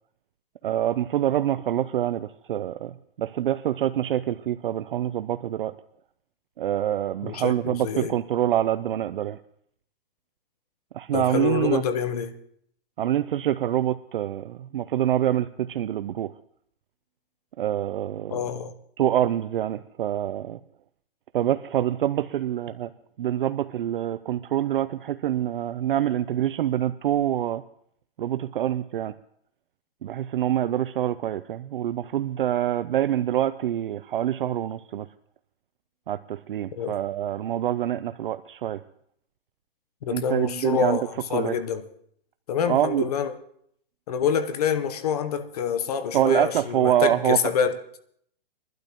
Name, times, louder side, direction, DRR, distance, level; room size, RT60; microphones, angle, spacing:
voice 1, 0.6-2.9 3.2-5.7 6.6-9.4 10.9-11.8 13.0-16.3 17.6-18.4 19.0-20.6 21.3-22.9 23.2-27.6 28.2-29.1 30.0-35.1 36.1-38.8 40.1-41.0 41.3-41.6 42.7-43.1 46.1-47.4, right 11 dB, 60° right, 0.5 m, -25 dB
voice 2, 7.2-8.1 11.1-12.3 18.3-18.7 36.8-37.0 40.0-41.8 42.5-43.4 44.1-47.8, left 7 dB, 40° left, 0.9 m, -26 dB
22.0 x 12.0 x 3.0 m
hypercardioid pair, 170°, 29 cm